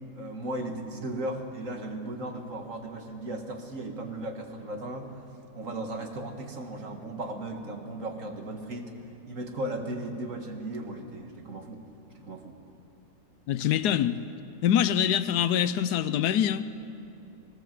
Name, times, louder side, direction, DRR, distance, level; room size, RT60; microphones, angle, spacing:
voice 1, 0.1-5.3 5.6-8.9 9.3-11.9 12.2-12.6, right 1 dB, 55° right, 2.0 m, -36 dB
voice 2, 13.5-14.2 14.6-16.7, left 10 dB, 80° left, 1.2 m, -24 dB
19.5 x 18.0 x 7.6 m
omnidirectional pair, 1.7 m